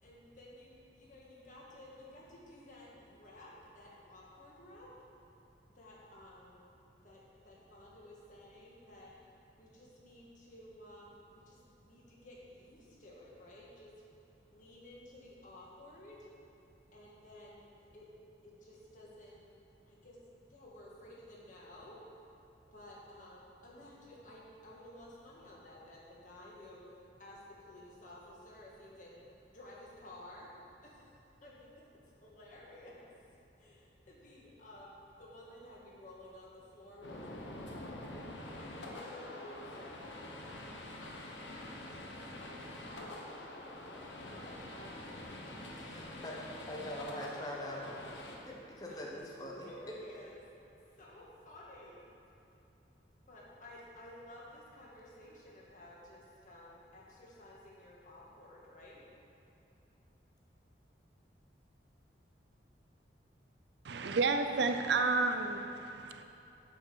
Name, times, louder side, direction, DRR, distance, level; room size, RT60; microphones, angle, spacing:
voice 1, 0.0-4.9 5.7-6.6 7.0-9.1 9.6-13.9 14.5-16.3 16.9-18.1 18.4-19.4 19.9-20.2 20.5-22.0 22.7-26.8 27.2-29.2 29.5-30.5 30.8-31.1 31.4-33.1 33.6-38.1 38.7-40.2 41.0-41.1 41.5-42.0 42.3-43.3 43.7-43.9 44.3-45.0 48.9-49.0 49.3-50.3 50.6-52.0 53.3-59.1, left 1 dB, 45° left, -4 dB, 1.6 m, -54 dB
sound 1, 37.0-48.4, left 1 dB, 80° left, 1.0 m, -46 dB
voice 2, 45.7-46.4 46.7-50.0, left 1 dB, 20° left, -2 dB, 1.0 m, -43 dB
voice 3, 63.8-66.2, right 3 dB, 70° right, 7 dB, 0.5 m, -31 dB
8.2 x 5.2 x 6.8 m, 2.8 s
head